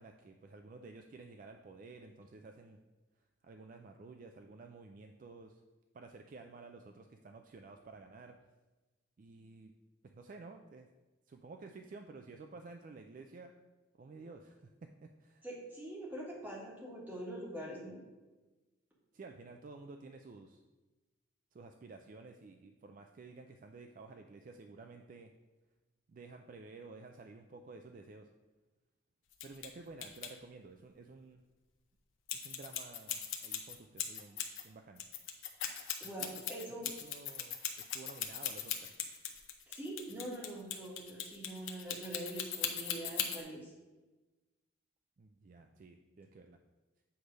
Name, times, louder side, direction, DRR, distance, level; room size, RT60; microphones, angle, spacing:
voice 1, 0.0-2.8 3.4-5.6 5.9-8.4 9.2-9.7 10.0-10.9 11.3-13.5 14.0-14.7 15.0-15.5 19.1-20.6 21.5-25.3 26.1-28.3 29.4-31.4 32.3-34.4 34.6-35.0 36.0-36.4 36.8-38.9 45.2-46.6, right 3 dB, 40° right, 5 dB, 0.3 m, -52 dB
voice 2, 15.4-18.0 36.0-36.9 39.7-43.7, right 1 dB, 10° right, -5 dB, 1.5 m, -44 dB
sound 1, 29.3-29.7 30.0-30.3 32.3-34.6 35.0-43.4, left 9 dB, 75° left, 0.7 m, -38 dB
7.9 x 3.3 x 5.2 m, 1.2 s
head